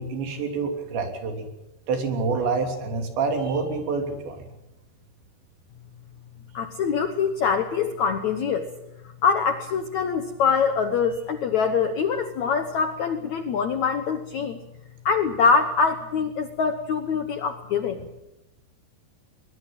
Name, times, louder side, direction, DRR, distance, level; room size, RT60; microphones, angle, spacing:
voice 1, 0.0-1.5 1.9-4.5, right 4 dB, 85° right, 5 dB, 5.4 m, -27 dB
voice 2, 6.5-8.7 9.2-14.6 15.1-18.1, left 5 dB, 70° left, 8 dB, 1.7 m, -24 dB
22.0 x 21.5 x 7.7 m, 0.89 s
omnidirectional pair, 4.9 m